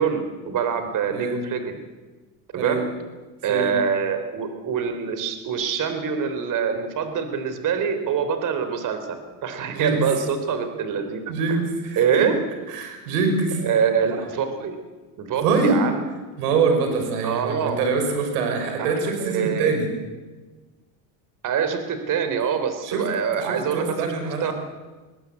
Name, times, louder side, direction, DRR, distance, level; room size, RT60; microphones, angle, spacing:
voice 1, 0.0-1.8 2.5-2.8 3.4-11.6 12.0-12.4 13.6-14.8 15.2-16.0 17.2-17.8 18.8-18.9 19.2-19.7 21.4-24.1 24.4-24.5, right 7 dB, 45° right, 8 dB, 3.8 m, -25 dB
voice 2, 11.3-12.3 12.7-13.6 15.4-15.8 16.4-19.9 22.8-23.1 23.4-24.5, right 4 dB, 90° right, 5 dB, 5.9 m, -24 dB
21.0 x 20.0 x 8.4 m, 1.3 s
supercardioid pair, 120°, 45 cm